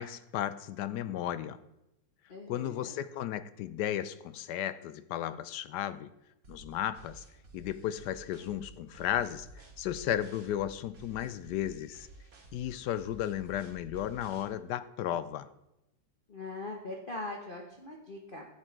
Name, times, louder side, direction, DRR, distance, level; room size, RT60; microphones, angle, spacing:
voice 1, 0.0-1.6 2.5-6.1 6.5-7.2 7.5-12.1 12.5-15.5, left 11 dB, 75° left, 14 dB, 1.1 m, -34 dB
voice 2, 2.3-2.9 16.3-18.4, left 2 dB, 35° left, 0 dB, 1.0 m, -41 dB
sound 1, 6.4-14.4, right 2 dB, 50° right, 2.2 m, -52 dB
11.5 x 8.7 x 4.6 m, 0.90 s
omnidirectional pair, 1.9 m